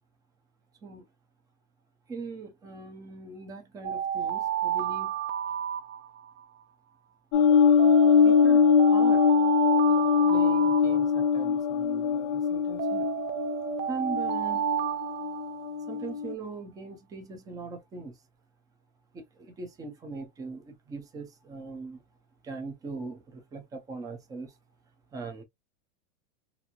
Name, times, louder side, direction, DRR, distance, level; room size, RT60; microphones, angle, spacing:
voice 1, 2.1-5.1 8.1-8.6 8.9-9.3 10.3-13.1 13.9-14.7 15.9-18.1 19.1-22.0 22.4-24.5 25.1-25.4, right 3 dB, 10° right, 0.4 m, -40 dB
Alarm, 3.8-6.4 7.8-11.4 12.8-16.0, right 11 dB, 70° right, 0.5 m, -31 dB
sound 1, 7.3-16.3, left 6 dB, 45° left, 0.5 m, -23 dB
3.0 x 2.6 x 2.4 m
supercardioid pair, 155°, 41 cm